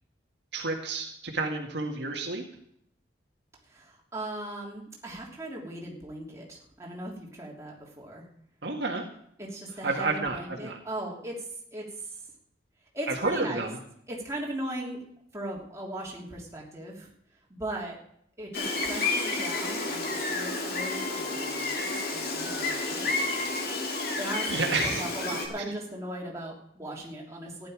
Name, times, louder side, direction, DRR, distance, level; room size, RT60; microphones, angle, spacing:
voice 1, 0.5-2.4 8.6-9.0 9.8-10.8 13.1-13.8 24.5-25.0, right 3 dB, 60° right, 1 dB, 2.0 m, -30 dB
voice 2, 3.7-8.3 9.4-11.5 11.7-11.9 12.9-13.7 14.1-15.0 15.3-17.1 17.5-18.0 18.4-23.5 24.2-27.7, right 1 dB, 15° right, -3 dB, 3.1 m, -38 dB
Gull seagull, 18.5-25.5, left 3 dB, 55° left, 2.7 m, -30 dB
15.0 x 11.0 x 5.0 m, 0.69 s
head